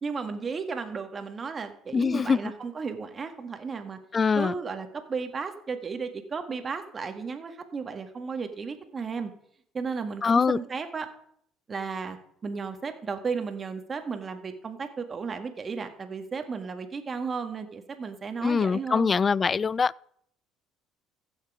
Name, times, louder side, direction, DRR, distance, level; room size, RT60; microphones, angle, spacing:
voice 1, 0.0-4.0 4.4-9.3 9.7-11.1 11.7-19.1, right 5 dB, 35° right, 1.8 m, -34 dB
voice 2, 1.9-2.4 4.1-4.5 10.2-10.6 18.4-19.9, left 5 dB, 35° left, 0.3 m, -23 dB
15.0 x 6.5 x 5.0 m
supercardioid pair, 70°, 0 cm